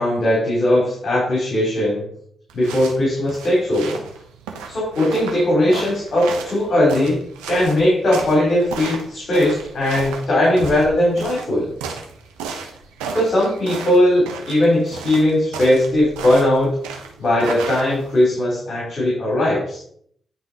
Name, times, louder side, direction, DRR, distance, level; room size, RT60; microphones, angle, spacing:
voice 1, 0.0-2.0 2.5-4.0 4.7-7.2 7.5-11.7 13.1-16.7 17.2-19.8, left 1 dB, 55° left, -6 dB, 3.6 m, -18 dB
sound 1, 2.5-18.2, right 5 dB, 85° right, 1.0 m, -34 dB
10.5 x 3.9 x 4.1 m, 0.65 s
hypercardioid pair, 40°, 0 cm